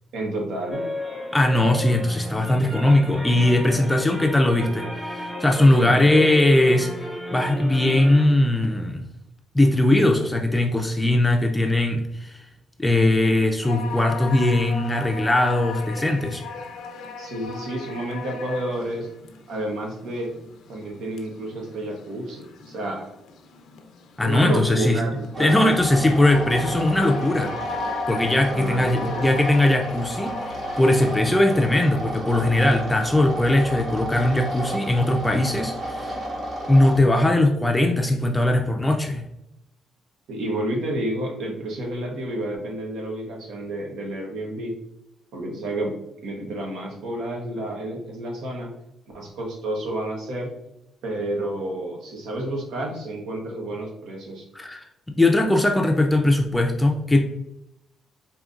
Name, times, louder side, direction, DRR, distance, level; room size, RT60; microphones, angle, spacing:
voice 1, 0.1-0.9 5.6-6.3 17.2-19.1 19.5-20.3 20.7-23.1 24.2-25.7 28.5-29.4 40.3-44.7 45.3-46.0 46.2-48.7 49.1-50.5 51.0-54.5, right 1 dB, 85° right, 1 dB, 1.0 m, -30 dB
sound 1, 0.7-8.2, left 1 dB, 10° right, 1.0 m, -33 dB
voice 2, 1.3-6.9 7.3-9.1 9.5-12.5 12.8-16.4 24.2-25.0 25.4-27.5 28.1-36.2 36.7-39.3 54.5-54.9 55.2-57.2, left 1 dB, 10° left, 3 dB, 0.4 m, -20 dB
sound 2, 13.6-31.2, left 5 dB, 80° left, 0.5 m, -38 dB
sound 3, 25.3-37.0, right 1 dB, 50° right, 1.3 m, -32 dB
5.0 x 2.8 x 2.5 m, 0.86 s
cardioid pair, 90°, 0 cm